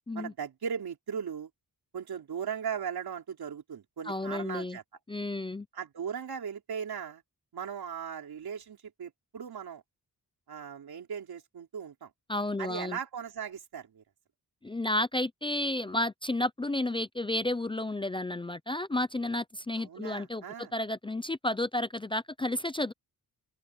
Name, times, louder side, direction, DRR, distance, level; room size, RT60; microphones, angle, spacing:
voice 1, 0.1-1.5 1.9-4.8 5.7-7.2 7.5-9.8 10.5-12.1 12.6-14.0 19.8-20.7, right 7 dB, 85° right, 3.6 m, -38 dB
voice 2, 4.1-4.8 5.1-5.7 12.3-13.0 14.6-22.9, left 1 dB, 15° left, 0.4 m, -32 dB
wide cardioid pair, 165°, 37 cm